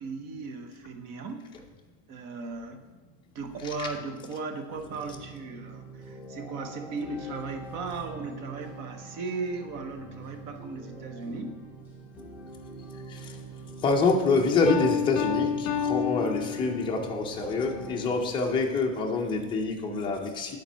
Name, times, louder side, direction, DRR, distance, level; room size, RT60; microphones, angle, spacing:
voice 1, 0.0-1.5 2.1-11.6, right 3 dB, 40° right, 6 dB, 0.8 m, -37 dB
sound 1, 4.7-18.0, right 2 dB, 5° right, 1.2 m, -45 dB
voice 2, 13.8-20.6, left 3 dB, 10° left, -1 dB, 0.5 m, -26 dB
Piano, 14.7-17.1, left 8 dB, 40° left, 1.3 m, -29 dB
8.9 x 4.3 x 5.5 m, 1.3 s
cardioid pair, 175°, 40 cm